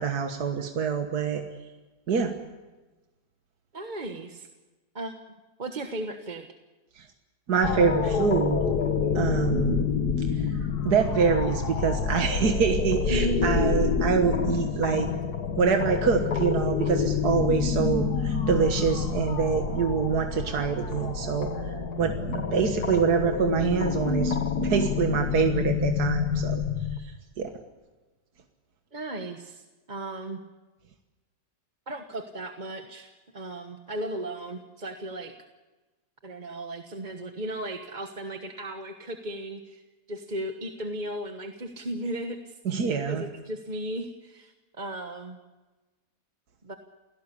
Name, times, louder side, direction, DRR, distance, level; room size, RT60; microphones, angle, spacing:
voice 1, 0.0-1.4 2.1-2.4 7.0-7.1 7.5-8.6 9.1-9.9 10.2-10.5 10.8-15.1 15.6-26.6 27.0-27.5 42.7-43.2, right 6 dB, 75° right, 5 dB, 2.0 m, -26 dB
voice 2, 3.7-4.5 4.9-5.1 5.6-6.5 13.1-13.7 28.9-30.4 31.9-35.4 36.2-39.8 40.1-42.6 43.1-45.4 46.6-46.7, right 1 dB, 30° right, 5 dB, 1.3 m, -35 dB
sound 1, 7.6-27.0, left 6 dB, 70° left, 2.1 m, -27 dB
29.0 x 17.5 x 8.4 m, 1.2 s
omnidirectional pair, 1.7 m